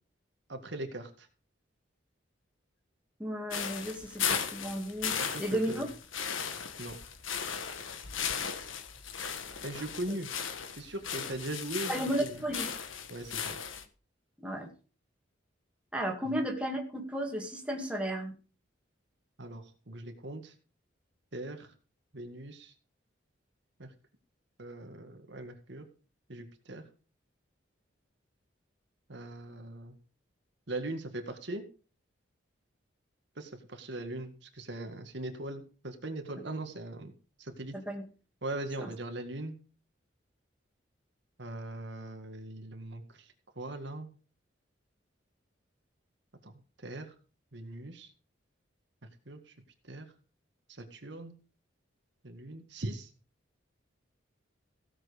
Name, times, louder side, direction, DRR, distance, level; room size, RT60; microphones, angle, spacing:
voice 1, 0.5-1.3 5.2-5.9 6.8-7.0 9.6-10.3 10.8-12.4 13.1-13.6 16.3-16.4 19.4-20.5 21.3-21.7 22.1-22.7 23.8-23.9 24.6-25.9 26.3-26.8 29.1-30.0 30.7-31.6 33.4-37.1 37.4-37.7 38.4-39.6 41.4-43.3 43.6-44.1 46.4-47.1 47.5-48.1 49.3-49.5 49.9-50.1 50.7-51.3 52.2-53.1, right 1 dB, 60° right, 5 dB, 1.9 m, -40 dB
voice 2, 3.2-5.9 11.9-12.7 14.4-14.7 15.9-18.3 37.7-38.0 38.8-38.9, right 1 dB, 5° right, 1 dB, 2.4 m, -34 dB
sound 1, 3.5-13.8, left 7 dB, 85° left, 1.5 m, -36 dB
16.0 x 7.4 x 5.1 m, 0.37 s
head